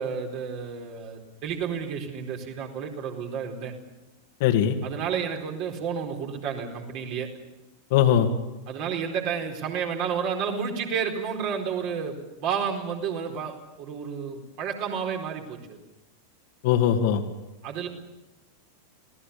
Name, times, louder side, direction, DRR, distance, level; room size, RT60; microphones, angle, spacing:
voice 1, 0.0-3.7 4.8-7.3 8.7-15.8 17.6-17.9, right 7 dB, 45° right, 1 dB, 4.4 m, -31 dB
voice 2, 4.4-4.8 7.9-8.3 16.6-17.2, left 9 dB, 50° left, 5 dB, 2.3 m, -20 dB
27.0 x 18.0 x 7.0 m, 1.0 s
figure-of-eight pair, 90°, 0 cm